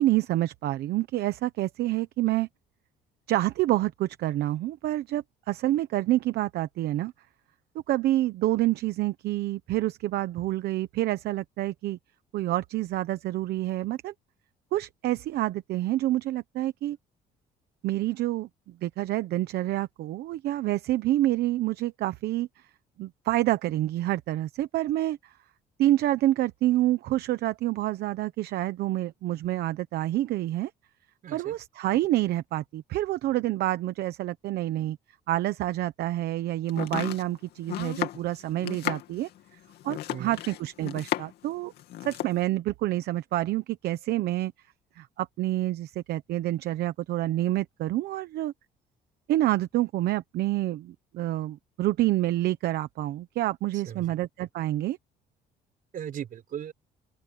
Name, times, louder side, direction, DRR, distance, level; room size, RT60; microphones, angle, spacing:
voice 1, 0.0-2.5 3.3-7.1 7.9-12.0 12.3-14.1 14.7-17.0 17.8-18.5 18.8-22.5 23.0-25.2 25.8-30.7 31.3-35.0 35.3-39.3 39.8-41.7 42.0-44.5 45.0-48.5 49.3-55.0, right 15 dB, 70° right, 1.0 m, -27 dB
voice 2, 31.2-31.6 40.1-40.4 53.7-54.1 55.9-56.7, right 9 dB, 55° right, 4.9 m, -38 dB
Domestic sounds home sounds, 36.7-41.5 41.8-42.4, left 13 dB, 75° left, 2.6 m, -34 dB
open air
cardioid pair, 110°, 17 cm